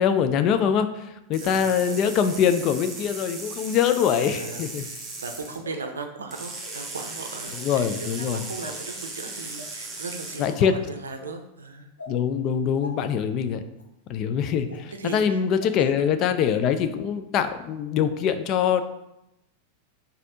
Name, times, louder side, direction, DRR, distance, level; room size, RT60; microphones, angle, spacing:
voice 1, 0.0-4.8 7.6-8.4 10.4-10.7 12.1-13.6 14.1-18.8, left 8 dB, 35° left, 9 dB, 0.4 m, -23 dB
sound 1, 1.3-5.6 6.3-10.6, right 3 dB, 20° right, 1.0 m, -37 dB
voice 2, 1.4-1.9 4.2-7.6 7.9-11.9 15.0-15.4 15.8-15.9, right 3 dB, 70° right, 5 dB, 0.5 m, -38 dB
sound 2, 1.9-2.0 2.9-3.0 4.4-4.6 5.6-5.8 6.6-6.8 7.7-8.0 8.6-8.8 9.6-9.7 10.3-10.5 11.2-11.3 12.0-12.1 12.8-12.9 13.7-13.8 14.7-14.8 15.6-15.7 16.2-16.3, left 2 dB, 80° left, 0.8 m, -42 dB
4.1 x 2.7 x 4.9 m, 0.88 s
figure-of-eight pair, 90°, 0 cm